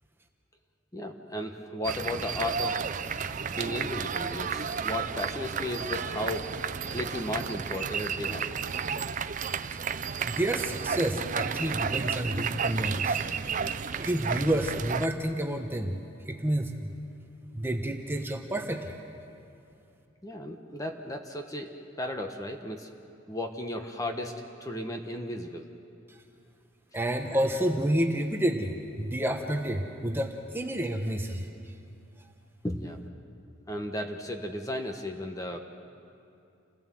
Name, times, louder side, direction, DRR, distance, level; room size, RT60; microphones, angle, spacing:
voice 1, 0.9-2.8 3.6-6.5 6.9-8.5 20.2-22.9 23.3-24.3 24.6-25.7 32.6-33.0 33.7-35.6, left 1 dB, 15° left, 4 dB, 1.0 m, -35 dB
sound 1, 1.8-15.1, right 6 dB, 35° right, 0.5 m, -32 dB
voice 2, 10.2-13.2 14.0-16.0 16.3-16.9 17.5-18.9 26.1-26.2 26.9-31.5, right 1 dB, 10° right, 3 dB, 1.0 m, -29 dB
28.5 x 16.5 x 7.7 m, 2.6 s
head